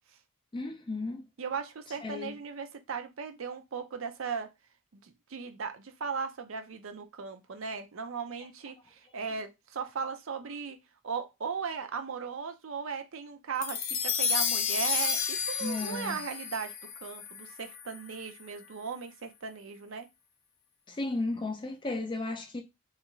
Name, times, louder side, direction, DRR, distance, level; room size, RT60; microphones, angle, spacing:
voice 1, 0.5-1.2 2.0-2.4 15.6-16.2 20.9-22.6, left 2 dB, 20° left, 0.4 m, -34 dB
voice 2, 1.4-4.5 4.9-10.8 11.0-16.7 17.0-20.1, right 5 dB, 60° right, 0.5 m, -37 dB
sound 1, 13.6-18.1, left 6 dB, 60° left, 0.6 m, -31 dB
3.3 x 2.4 x 3.0 m
head